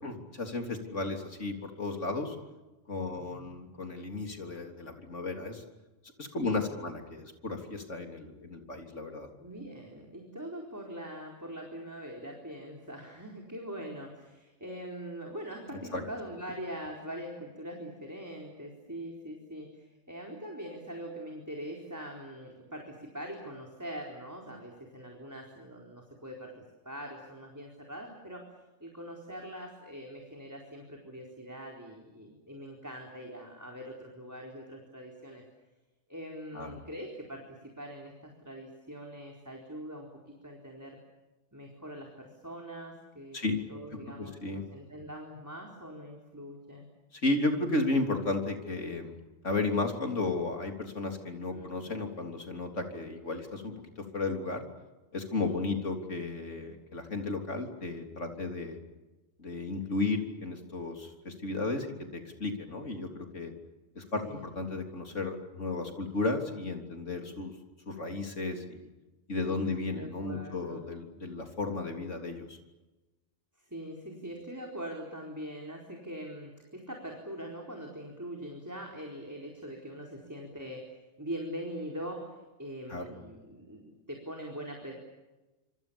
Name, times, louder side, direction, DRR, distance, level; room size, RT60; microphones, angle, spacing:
voice 1, 0.0-2.4 2.9-5.6 6.2-9.3 15.9-16.0 36.5-36.8 43.3-43.6 44.2-44.6 47.1-53.9 54.1-54.7 55.1-58.8 59.4-61.9 62.1-63.5 64.0-67.5 67.9-68.9 69.3-72.6 82.9-83.1, left 3 dB, 85° left, 4 dB, 3.9 m, -34 dB
voice 2, 3.1-3.6 6.4-6.7 9.4-28.5 28.8-35.4 36.1-41.0 41.5-43.4 43.7-46.9 51.5-51.7 55.4-55.6 64.2-64.4 69.5-70.8 73.6-80.9 81.2-84.9, equal, 15° right, 0 dB, 4.3 m, -43 dB
27.0 x 27.0 x 7.1 m, 1.1 s
omnidirectional pair, 1.2 m